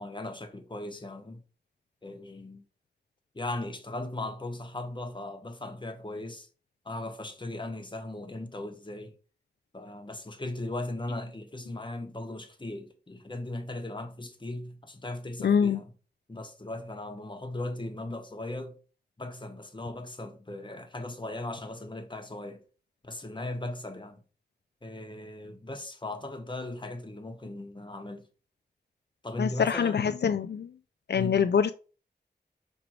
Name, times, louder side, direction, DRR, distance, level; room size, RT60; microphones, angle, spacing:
voice 1, 0.0-1.4 2.0-2.6 3.3-6.5 6.8-9.1 9.7-15.9 16.3-18.8 19.2-22.6 23.0-24.2 24.8-28.3 29.2-30.2 31.1-31.6, left 2 dB, 30° left, 1.1 m, -38 dB
voice 2, 15.4-15.8 29.4-30.7 31.1-31.7, left 7 dB, 80° left, 0.4 m, -25 dB
5.9 x 3.4 x 4.8 m
wide cardioid pair, 80°, 17 cm